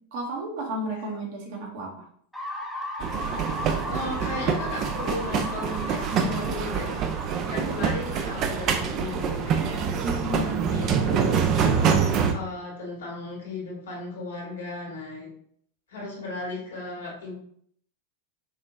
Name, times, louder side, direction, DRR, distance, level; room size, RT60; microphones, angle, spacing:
voice 1, 0.1-2.1 10.0-10.7, right 1 dB, 55° right, 0 dB, 1.3 m, -33 dB
sound 1, 2.3-10.2, left 1 dB, ahead, 0.9 m, -37 dB
sound 2, 3.0-12.3, right 6 dB, 40° right, 0.5 m, -26 dB
voice 2, 3.9-6.9 7.5-10.0 10.3-11.4 11.7-15.3 15.9-17.3, left 2 dB, 70° left, -3 dB, 1.8 m, -36 dB
5.5 x 2.9 x 2.6 m, 0.63 s
figure-of-eight pair, 95°, 0 cm